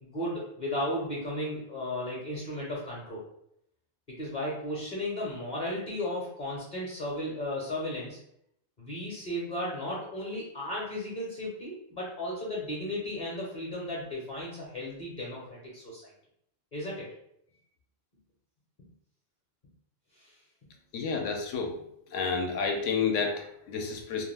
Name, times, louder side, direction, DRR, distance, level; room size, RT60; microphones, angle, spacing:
voice 1, 0.0-3.2 4.1-8.2 8.8-16.1 16.7-17.1, left 1 dB, 45° left, -5 dB, 0.7 m, -35 dB
voice 2, 20.9-21.8 22.1-24.2, left 5 dB, 75° left, 3 dB, 0.9 m, -30 dB
2.4 x 2.2 x 3.2 m, 0.73 s
omnidirectional pair, 1.3 m